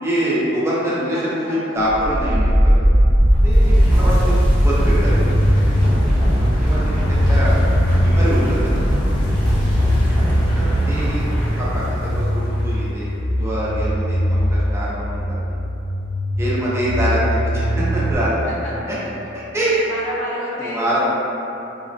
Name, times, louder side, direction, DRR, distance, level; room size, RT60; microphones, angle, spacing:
voice 1, 0.0-2.8 3.4-5.4 6.2-6.8 7.1-7.6 8.0-8.8 10.5-11.3 11.6-13.1 13.4-15.4 16.4-18.3 18.9-19.0 19.3-19.9 20.6-21.0, right 1 dB, 15° right, -8 dB, 0.5 m, -24 dB
voice 2, 1.0-1.9 2.3-2.7 9.2-9.9 14.3-14.9 16.6-17.1 18.6-18.7 19.6-21.0, equal, 85° left, -9 dB, 1.0 m, -34 dB
sound 1, 1.8-12.6, equal, 25° left, 0.9 m, -18 dB
sound 2, 3.8-18.1, equal, 60° right, 0.5 m, -22 dB
4.0 x 2.0 x 2.6 m, 2.9 s
head